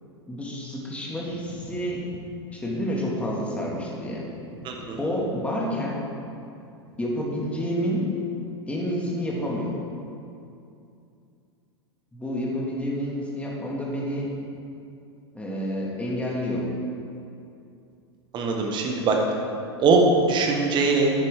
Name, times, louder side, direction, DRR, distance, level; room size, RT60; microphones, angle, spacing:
voice 1, 0.3-2.0 2.5-4.3 5.0-6.0 7.0-8.1 8.7-9.7 12.1-14.3 15.3-16.7, equal, 10° left, -4 dB, 2.1 m, -29 dB
voice 2, 4.6-5.0 18.3-19.2 19.8-21.1, right 3 dB, 35° right, 1 dB, 1.6 m, -21 dB
10.5 x 9.8 x 3.7 m, 2.6 s
figure-of-eight pair, 90°, 14 cm